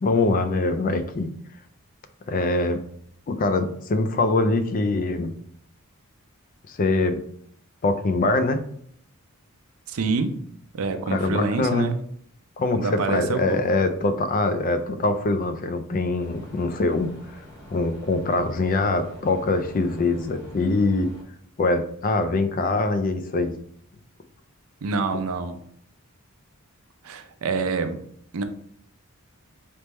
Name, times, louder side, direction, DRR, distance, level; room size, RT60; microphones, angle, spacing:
voice 1, 0.0-1.3 2.3-2.8 3.3-5.3 6.7-7.2 7.8-8.6 11.1-11.9 12.6-17.1 17.7-21.1 21.6-23.5, left 2 dB, 40° left, 9 dB, 0.4 m, -23 dB
voice 2, 9.9-10.4 10.7-12.0 12.7-13.6 24.8-25.6 27.0-28.0 28.3-28.4, right 4 dB, 75° right, 8 dB, 0.5 m, -26 dB
sound 1, 16.2-21.2, equal, 15° left, 1.4 m, -46 dB
4.3 x 3.4 x 3.0 m, 0.64 s
head